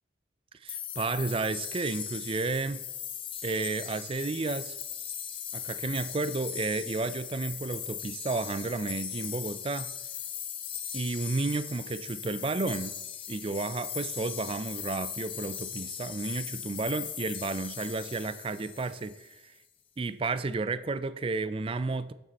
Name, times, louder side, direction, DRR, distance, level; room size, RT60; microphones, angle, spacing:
voice 1, 0.6-2.8 3.4-4.8 5.5-10.0 10.9-12.9 13.3-19.5 20.0-22.1, right 3 dB, 30° right, 0.4 m, -32 dB
sound 1, 0.7-19.4, left 8 dB, 30° left, 0.7 m, -39 dB
11.0 x 6.2 x 4.1 m
head